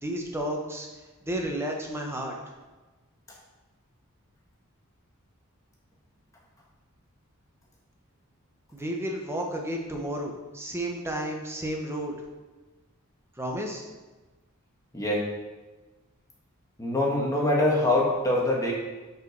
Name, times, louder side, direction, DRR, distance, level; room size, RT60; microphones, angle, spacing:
voice 1, 0.0-0.9 1.3-2.4 8.7-12.2 13.4-13.8, right 1 dB, 10° right, 1 dB, 0.9 m, -32 dB
voice 2, 14.9-15.3 16.8-18.7, left 1 dB, 15° left, -4 dB, 1.4 m, -24 dB
5.6 x 5.0 x 5.3 m, 1.2 s
head